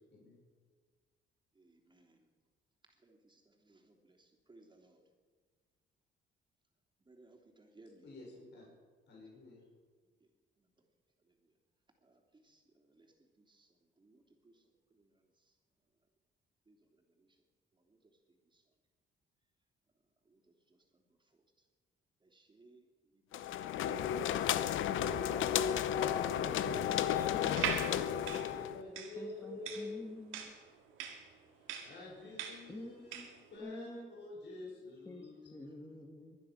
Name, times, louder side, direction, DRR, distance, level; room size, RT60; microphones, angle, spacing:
voice 1, 1.5-2.3 2.9-5.0 7.0-8.1 10.6-10.9 11.2-11.5 12.0-15.5 16.7-17.4 17.7-18.6 20.2-21.4 22.2-24.2 31.8-33.9 34.6-35.3, right 2 dB, 25° right, 2 dB, 3.2 m, -66 dB
voice 2, 9.1-9.6 27.3-30.0 31.8-33.9 34.2-35.7, left 2 dB, 60° left, -4 dB, 5.7 m, -48 dB
sound 1, 23.3-28.8, left 10 dB, 80° left, 0.8 m, -33 dB
sound 2, 27.5-33.4, right 7 dB, 90° right, 2.1 m, -41 dB
voice 3, 29.2-30.5 32.7-33.3 33.6-34.1 35.1-36.4, left 1 dB, 15° left, 2 dB, 1.8 m, -49 dB
22.5 x 10.0 x 5.9 m, 1.6 s
cardioid pair, 90°, 20 cm